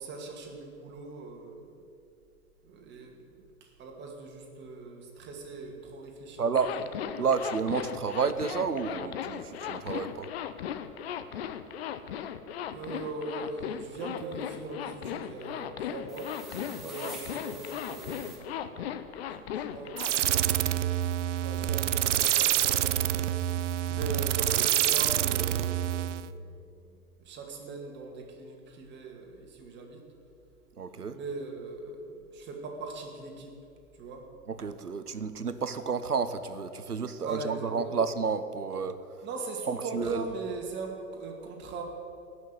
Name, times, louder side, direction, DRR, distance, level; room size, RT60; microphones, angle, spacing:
voice 1, 0.0-1.7 2.6-6.8 12.7-20.6 21.3-23.1 23.9-30.1 31.1-33.5 33.9-34.2 37.2-38.1 39.2-41.8, right 3 dB, 25° right, 1 dB, 2.4 m, -41 dB
voice 2, 6.4-6.7 7.2-10.3 16.7-17.1 30.8-31.2 34.5-39.0 39.7-40.2, right 5 dB, 85° right, 11 dB, 1.0 m, -31 dB
Zipper (clothing), 6.6-20.1, left 9 dB, 45° left, 0.8 m, -37 dB
sound 1, 16.1-18.4, right 1 dB, ahead, 2.9 m, -46 dB
sound 2, 20.0-26.3, right 12 dB, 55° right, 0.6 m, -27 dB
17.0 x 6.4 x 9.5 m, 2.6 s
figure-of-eight pair, 110°, 44 cm